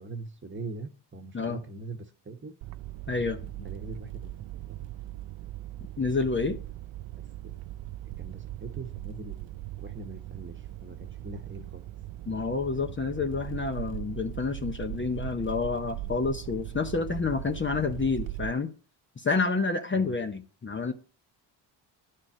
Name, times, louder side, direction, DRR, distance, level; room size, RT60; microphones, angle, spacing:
voice 1, 0.0-2.5 3.6-4.8 7.1-7.6 8.2-9.5 9.8-11.8 19.9-20.2, right 2 dB, 25° right, 1.3 m, -42 dB
sound 1, 2.6-18.5, right 15 dB, 65° right, 0.6 m, -39 dB
voice 2, 3.1-3.7 6.0-6.6 12.3-18.7 19.2-20.9, left 4 dB, 25° left, 0.9 m, -29 dB
9.7 x 4.5 x 6.2 m
supercardioid pair, 70°, 49 cm